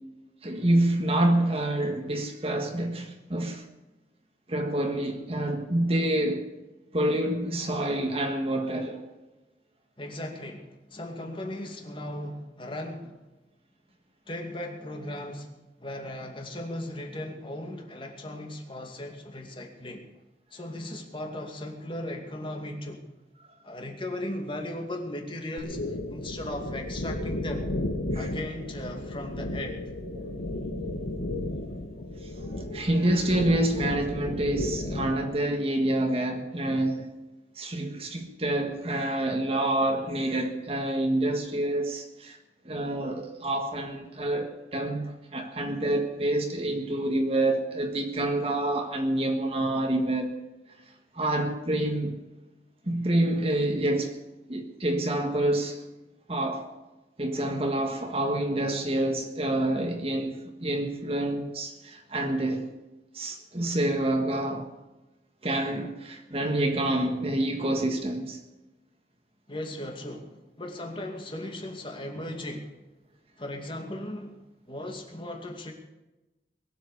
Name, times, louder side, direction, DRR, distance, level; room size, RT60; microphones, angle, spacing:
voice 1, 0.4-3.6 4.5-6.4 6.9-9.0 28.1-28.3 30.2-30.3 32.7-37.0 37.5-42.4 42.6-50.4 51.1-52.2 52.8-54.2 54.5-55.8 56.3-56.7 57.2-62.7 63.1-64.7 65.4-68.4, right 1 dB, 35° right, 1.6 m, -27 dB
voice 2, 10.0-13.2 14.3-15.5 15.8-20.1 20.5-23.1 23.6-27.7 28.1-29.8 36.6-36.8 69.5-72.8 73.4-75.7, left 1 dB, 30° left, 2.4 m, -37 dB
sound 1, 25.6-35.2, left 1 dB, 80° left, 1.5 m, -33 dB
21.5 x 8.0 x 6.8 m
head